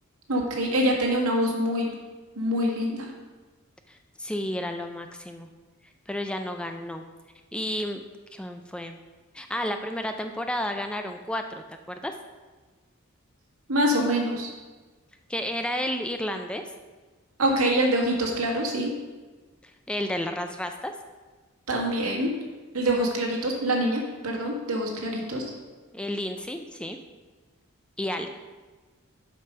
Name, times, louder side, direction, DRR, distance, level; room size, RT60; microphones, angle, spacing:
voice 1, 0.3-1.9 2.3-3.1 13.7-14.5 17.4-18.9 21.7-22.3 22.7-25.4, right 1 dB, 85° right, -1 dB, 1.7 m, -25 dB
voice 2, 3.9-5.5 6.1-7.0 7.5-8.0 8.3-9.0 9.3-12.1 15.3-16.6 19.6-20.9 25.9-27.0 28.0-28.3, left 1 dB, 5° left, 6 dB, 0.3 m, -31 dB
7.5 x 5.2 x 5.6 m, 1.3 s
head